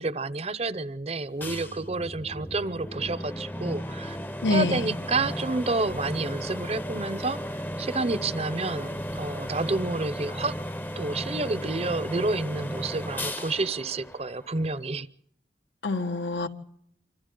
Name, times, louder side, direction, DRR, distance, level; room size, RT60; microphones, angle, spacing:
voice 1, 0.0-4.2 4.5-7.4 7.8-10.5 11.0-15.1, right 3 dB, 35° right, 16 dB, 0.7 m, -29 dB
sound 1, 1.4-14.9, equal, 10° left, 0.7 m, -35 dB
voice 2, 4.4-4.9 15.8-16.5, left 2 dB, 80° left, 7 dB, 1.6 m, -26 dB
27.5 x 25.5 x 3.9 m, 0.70 s
head